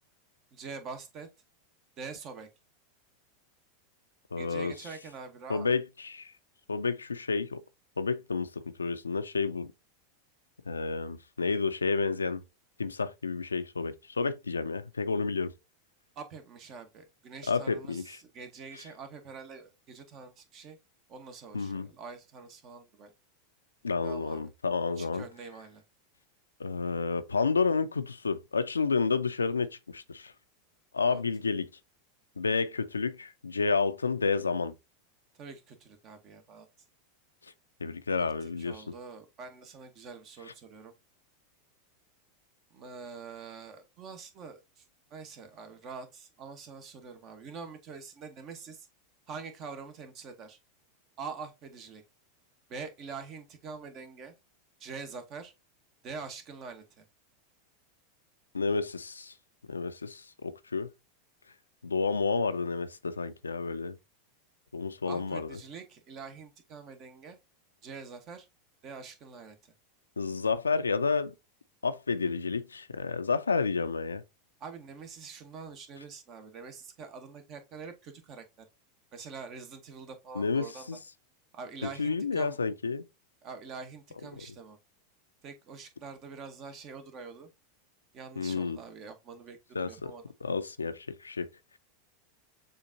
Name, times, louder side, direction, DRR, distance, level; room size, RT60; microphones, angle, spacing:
voice 1, 0.5-1.3 2.0-2.5 4.4-5.7 16.2-20.8 21.1-23.1 24.0-24.5 25.0-25.8 31.0-31.2 35.4-36.7 38.2-40.9 42.7-44.8 45.1-48.9 49.3-50.6 51.2-52.0 52.7-54.3 54.8-55.5 56.0-57.0 65.0-67.4 67.8-68.5 68.8-69.6 74.6-78.7 79.1-80.9 81.5-82.6 83.4-84.8 85.4-87.5 88.1-90.2, right 5 dB, 40° right, 1.0 m, -45 dB
voice 2, 4.3-4.7 5.5-6.3 6.7-7.6 8.0-9.7 10.7-12.4 12.8-15.5 17.5-18.2 21.5-21.9 23.8-25.2 26.6-30.3 30.9-31.7 32.4-34.7 37.8-38.9 58.5-59.3 59.7-60.9 61.8-64.0 64.7-65.6 70.2-71.3 71.8-74.2 80.3-81.0 81.8-83.1 84.4-84.5 88.4-88.8 89.7-90.1 90.4-91.5, left 4 dB, 85° left, 0.4 m, -30 dB
6.9 x 2.5 x 2.6 m
figure-of-eight pair, 90°, 0 cm